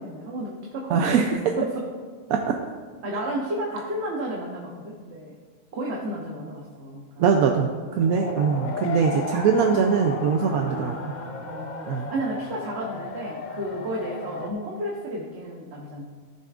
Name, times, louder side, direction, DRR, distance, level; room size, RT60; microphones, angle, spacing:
voice 1, 0.0-1.9 3.0-5.4 5.7-7.2 8.1-8.9 10.4-16.0, right 1 dB, 55° right, -2 dB, 1.2 m, -33 dB
voice 2, 0.9-1.3 2.3-2.5 7.2-11.0 11.9-12.1, right 6 dB, 85° right, 3 dB, 1.1 m, -22 dB
sound 1, 8.0-14.5, left 5 dB, 55° left, 0.5 m, -35 dB
15.0 x 6.8 x 2.4 m, 1.5 s
omnidirectional pair, 1.5 m